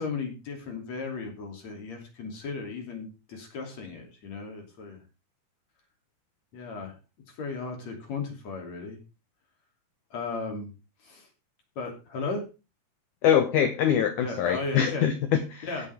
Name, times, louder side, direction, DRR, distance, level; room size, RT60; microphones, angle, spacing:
voice 1, 0.0-5.0 6.5-6.9 7.4-9.0 10.1-10.7 11.0-11.3 11.8-12.4 14.2-15.1 15.6-15.9, left 4 dB, 45° left, 2 dB, 3.7 m, -35 dB
voice 2, 13.2-15.7, left 9 dB, 70° left, 8 dB, 2.0 m, -24 dB
15.5 x 9.0 x 3.5 m, 0.30 s
omnidirectional pair, 4.7 m